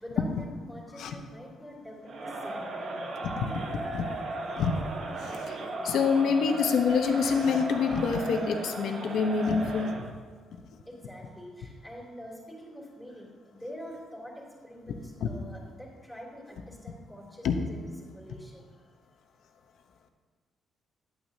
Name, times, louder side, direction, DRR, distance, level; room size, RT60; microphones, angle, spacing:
voice 1, 0.0-2.9 10.9-18.9, equal, ahead, -5 dB, 2.9 m, -45 dB
Crowd, 2.0-10.1, right 2 dB, 60° right, 1.1 m, -36 dB
voice 2, 3.2-4.1 4.6-4.8 5.2-5.6 5.8-10.1 15.2-15.3 17.4-17.6, left 5 dB, 75° left, 6 dB, 0.8 m, -27 dB
11.0 x 8.9 x 2.8 m, 1.5 s
cardioid pair, 105°, 0 cm